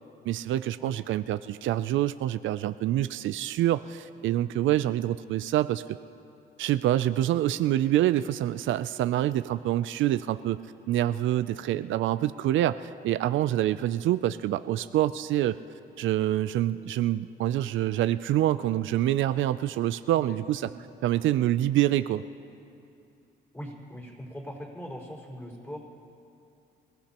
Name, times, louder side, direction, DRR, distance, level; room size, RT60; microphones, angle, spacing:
voice 1, 0.3-5.8 6.6-10.6 10.9-15.6 16.0-20.7 21.0-22.2, right 13 dB, 75° right, 13 dB, 0.4 m, -26 dB
voice 2, 23.5-25.8, equal, 10° left, -2 dB, 4.7 m, -40 dB
27.5 x 16.0 x 3.0 m, 2.6 s
cardioid pair, 90°, 20 cm